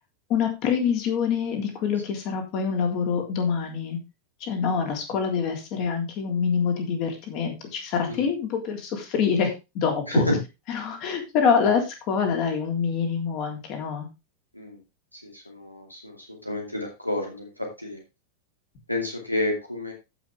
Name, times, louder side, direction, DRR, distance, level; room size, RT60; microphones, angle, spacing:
voice 1, 0.3-4.0 4.4-10.3 10.7-14.1, left 6 dB, 40° left, 3 dB, 3.5 m, -26 dB
voice 2, 15.2-18.0 18.9-19.9, left 1 dB, 90° left, 1 dB, 2.6 m, -29 dB
15.5 x 5.9 x 3.4 m, 0.26 s
figure-of-eight pair, 90°, 0 cm